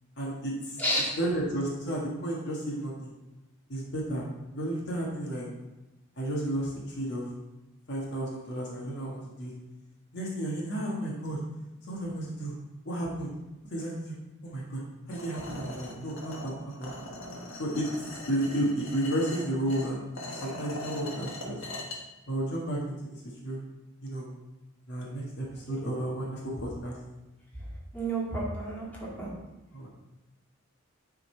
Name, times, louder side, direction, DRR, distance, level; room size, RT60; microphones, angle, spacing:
voice 1, 0.2-0.8 1.2-3.1 3.7-5.5 6.2-7.3 7.9-9.5 10.1-11.4 11.9-12.5 12.8-13.3 13.7-14.1 14.4-14.8 15.1-16.9 17.6-17.9 18.1-21.6 22.3-23.7 24.0-24.3 24.9-27.0 29.7-29.9, right 1 dB, 55° left, -3 dB, 1.5 m, -32 dB
sound 1, 15.1-22.0, left 1 dB, 70° left, 1.4 m, -41 dB
voice 2, 27.9-29.3, right 1 dB, 10° left, -6 dB, 2.0 m, -30 dB
9.4 x 3.9 x 4.4 m, 1.0 s
head